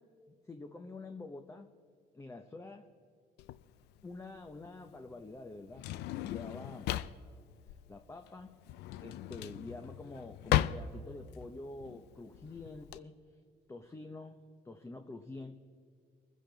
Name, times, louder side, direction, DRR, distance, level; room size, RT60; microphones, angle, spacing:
voice 1, 0.3-1.7 2.1-2.9 4.0-5.8 6.1-6.9 7.7-8.5 9.0-13.2 13.7-15.5, left 2 dB, 15° left, 6 dB, 0.8 m, -47 dB
Drawer open or close, 3.4-13.0, left 13 dB, 80° left, 0.5 m, -37 dB
24.0 x 10.0 x 4.0 m, 2.2 s
cardioid pair, 110°, 17 cm